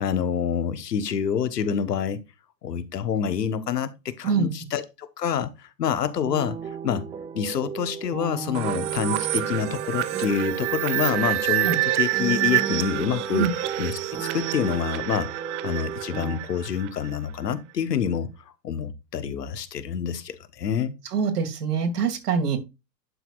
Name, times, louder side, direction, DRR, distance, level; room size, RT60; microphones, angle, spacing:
voice 1, 0.0-2.2 2.6-6.6 6.8-7.0 7.3-13.5 13.8-15.3 15.6-18.3 18.6-20.9, left 8 dB, 70° left, 1.3 m, -27 dB
voice 2, 4.2-4.5 11.6-11.8 13.3-13.5 21.0-22.6, right 6 dB, 65° right, 2.5 m, -24 dB
sound 1, 6.2-16.4, right 6 dB, 10° right, 0.5 m, -35 dB
sound 2, 8.5-17.2, right 16 dB, 45° right, 0.9 m, -27 dB
11.0 x 6.0 x 2.5 m
figure-of-eight pair, 100°, 50 cm